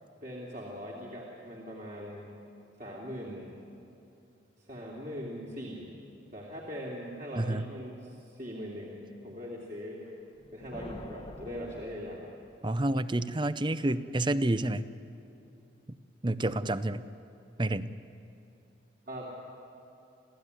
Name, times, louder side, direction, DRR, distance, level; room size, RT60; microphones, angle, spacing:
voice 1, 0.2-2.3 2.8-3.6 4.6-5.9 6.3-10.1 10.5-12.2 19.1-19.3, equal, 45° right, -3 dB, 3.0 m, -41 dB
voice 2, 7.4-7.7 12.6-14.9 16.2-17.0 17.6-17.9, right 1 dB, 25° right, 14 dB, 0.6 m, -29 dB
sound 1, 10.3-12.8, left 1 dB, 25° left, 1.0 m, -46 dB
29.0 x 15.0 x 9.8 m, 2.8 s
head